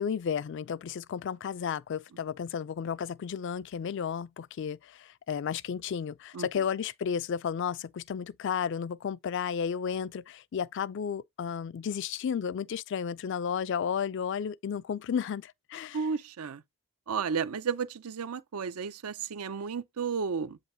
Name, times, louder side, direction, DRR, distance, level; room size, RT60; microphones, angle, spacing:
voice 1, 0.0-16.0, left 7 dB, 55° left, 0.3 m, -33 dB
voice 2, 15.9-16.6 17.1-20.6, right 6 dB, 85° right, 0.5 m, -33 dB
7.9 x 5.0 x 2.7 m
head